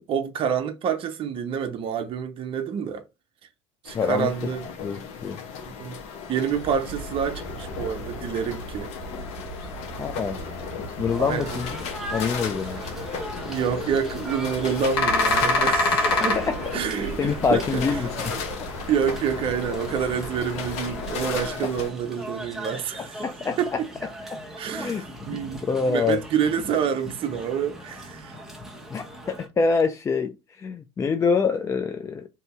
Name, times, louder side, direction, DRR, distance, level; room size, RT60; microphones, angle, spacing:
voice 1, 0.0-3.0 3.8-4.7 5.8-6.0 6.3-8.9 11.2-11.6 13.4-16.4 16.7-17.8 18.9-23.2 23.6-23.7 24.6-28.4, right 7 dB, 40° right, 0.6 m, -27 dB
sound 1, 3.8-21.9, left 6 dB, 55° left, 0.8 m, -36 dB
voice 2, 3.9-4.3 4.8-5.4 10.0-10.4 11.0-11.8 12.1-12.9 16.4-16.6 16.9-18.1 21.6-21.7 23.0-23.8 24.3-24.4 24.7-25.1 25.6-26.2 28.9-32.3, left 5 dB, 20° left, 0.4 m, -25 dB
sound 2, 6.5-21.5, left 2 dB, 85° left, 1.1 m, -31 dB
sound 3, 11.1-29.5, equal, 5° right, 1.0 m, -39 dB
2.7 x 2.7 x 3.5 m
hypercardioid pair, 80°, 13 cm